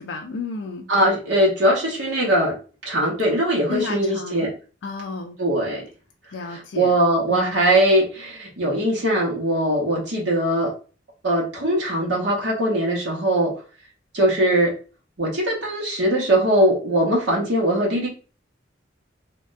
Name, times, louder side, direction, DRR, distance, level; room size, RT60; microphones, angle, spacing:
voice 1, 0.0-0.9 3.7-4.5 4.8-5.4 6.3-6.9 7.3-7.6, left 4 dB, 70° left, 3 dB, 0.4 m, -32 dB
voice 2, 0.9-2.6 2.8-4.5 5.4-5.8 6.5-10.7 11.2-13.5 14.1-14.7 15.2-18.1, right 1 dB, 80° right, -3 dB, 0.9 m, -21 dB
3.3 x 2.2 x 2.5 m, 0.35 s
head